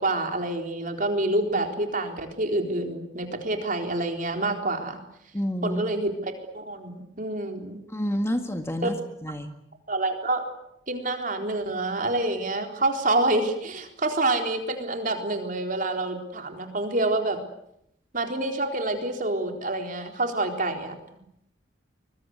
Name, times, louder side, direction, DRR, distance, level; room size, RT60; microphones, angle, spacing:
voice 1, 0.0-5.0 5.6-7.8 8.8-8.9 9.9-10.5 10.9-17.4 18.1-20.9, right 2 dB, 45° right, 4 dB, 4.0 m, -27 dB
voice 2, 5.3-5.8 7.9-8.9 9.2-9.5, equal, 15° left, 6 dB, 1.9 m, -28 dB
24.5 x 22.5 x 8.2 m, 0.76 s
head